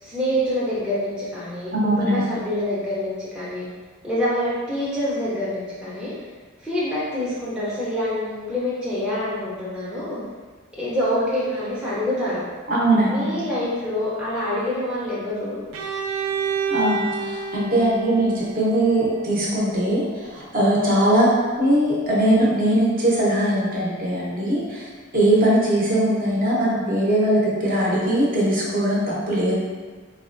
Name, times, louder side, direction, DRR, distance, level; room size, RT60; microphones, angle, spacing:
voice 1, 0.0-1.7 2.0-3.6 4.0-6.1 6.6-10.2 10.8-12.4 13.0-15.6, left 1 dB, 5° right, -10 dB, 0.5 m, -26 dB
voice 2, 1.7-2.3 12.7-13.4 16.7-24.8 25.1-29.5, right 1 dB, 45° right, -6 dB, 0.8 m, -20 dB
Bowed string instrument, 15.7-19.6, right 5 dB, 80° right, 0.4 m, -29 dB
4.1 x 2.2 x 2.5 m, 1.4 s
head